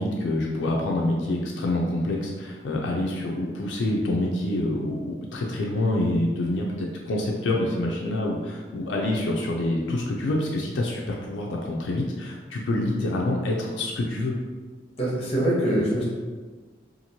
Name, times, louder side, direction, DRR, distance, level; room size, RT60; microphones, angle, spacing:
voice 1, 0.0-14.3, left 1 dB, 85° left, -1 dB, 0.4 m, -26 dB
voice 2, 15.0-16.1, right 1 dB, 35° left, -5 dB, 0.9 m, -23 dB
2.9 x 2.5 x 2.7 m, 1.4 s
head